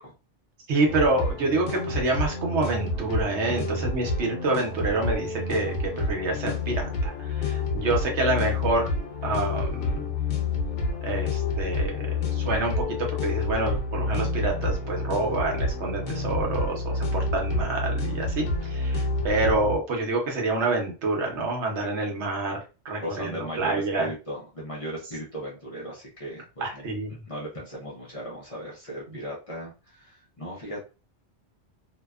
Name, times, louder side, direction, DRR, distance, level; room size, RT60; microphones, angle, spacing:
voice 1, 0.7-8.9 9.2-10.1 11.0-22.6 22.8-24.1 26.6-27.2, right 2 dB, 75° right, 1 dB, 1.1 m, -27 dB
sound 1, 0.9-19.8, left 2 dB, 90° left, 1.0 m, -29 dB
voice 2, 23.0-26.8 27.3-30.8, equal, 35° left, -5 dB, 0.6 m, -37 dB
2.7 x 2.1 x 2.3 m, 0.32 s
omnidirectional pair, 1.2 m